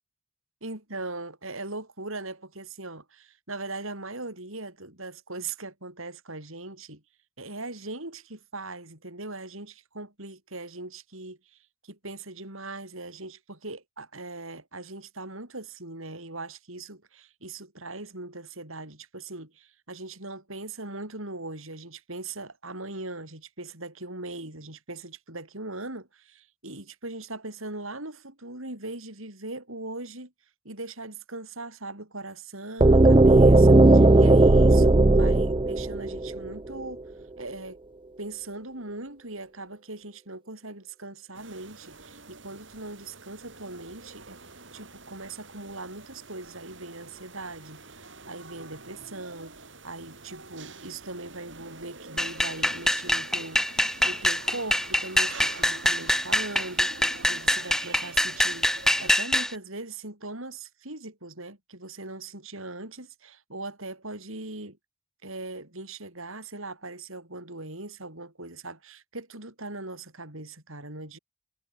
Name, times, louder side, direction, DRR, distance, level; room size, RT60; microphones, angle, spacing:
voice 1, 0.6-7.0 7.4-30.3 30.6-37.1 37.4-37.8 38.2-44.4 44.7-64.8 65.2-71.2, right 2 dB, 75° right, 7.1 m, -40 dB
sound 1, 32.8-36.7, right 2 dB, 25° right, 0.5 m, -16 dB
sound 2, 41.3-59.2, right 3 dB, 60° right, 7.0 m, -47 dB
sound 3, 52.2-59.5, left 1 dB, ahead, 1.9 m, -25 dB
head